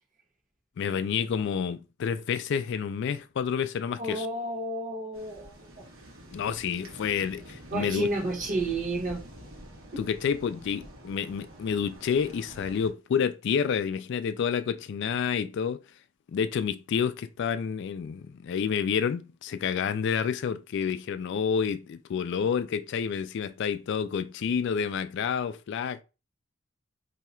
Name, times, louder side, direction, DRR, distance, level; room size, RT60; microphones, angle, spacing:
voice 1, 0.8-4.3 6.3-8.1 10.0-15.8 16.3-26.0, left 7 dB, 60° left, 0.3 m, -29 dB
voice 2, 4.0-5.5 7.7-9.2, right 2 dB, 40° right, 1.3 m, -31 dB
sound 1, 5.1-12.9, equal, 80° right, 1.1 m, -47 dB
2.8 x 2.3 x 4.2 m
head